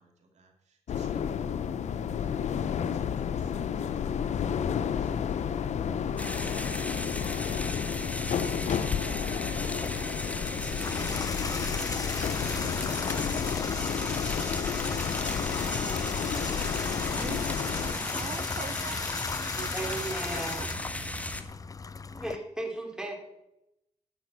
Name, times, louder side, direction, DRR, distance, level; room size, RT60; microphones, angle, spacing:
voice 1, 0.0-7.0 7.4-14.6, right 1 dB, 70° right, 2 dB, 2.9 m, -55 dB
sound 1, 0.9-17.9, left 7 dB, 70° left, 0.7 m, -31 dB
sound 2, 6.2-21.4, left 1 dB, 10° left, 1.3 m, -36 dB
Water tap faucet / Bathtub (filling or washing), 9.6-22.4, left 4 dB, 30° left, 0.5 m, -36 dB
voice 2, 17.1-20.7 21.4-21.6, right 7 dB, 50° right, 13 dB, 0.6 m, -44 dB
voice 3, 19.7-20.6 22.1-23.2, right 1 dB, 5° right, 1 dB, 3.6 m, -35 dB
11.0 x 6.8 x 8.3 m, 0.87 s
cardioid pair, 70°, 12 cm